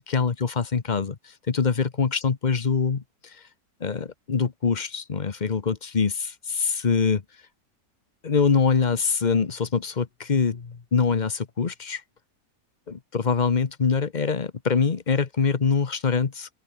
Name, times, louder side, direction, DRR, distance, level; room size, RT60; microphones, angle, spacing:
voice 1, 0.1-1.2 1.5-3.0 3.8-7.2 8.2-12.0 12.9-16.5, left 5 dB, 35° left, 1.0 m, -24 dB
open air
omnidirectional pair, 1.6 m